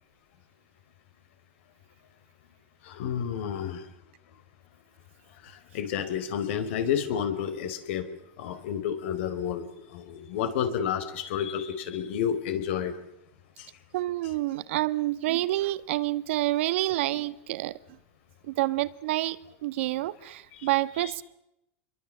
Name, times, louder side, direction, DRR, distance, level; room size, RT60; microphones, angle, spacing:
voice 1, 2.8-3.9 5.4-8.1 8.4-12.9 13.6-13.7 20.5-20.7 21.0-21.1, left 8 dB, 70° left, 4.5 m, -30 dB
voice 2, 13.9-17.8 18.5-21.2, right 16 dB, 75° right, 1.6 m, -28 dB
27.0 x 23.0 x 7.5 m
supercardioid pair, 135°, 7 cm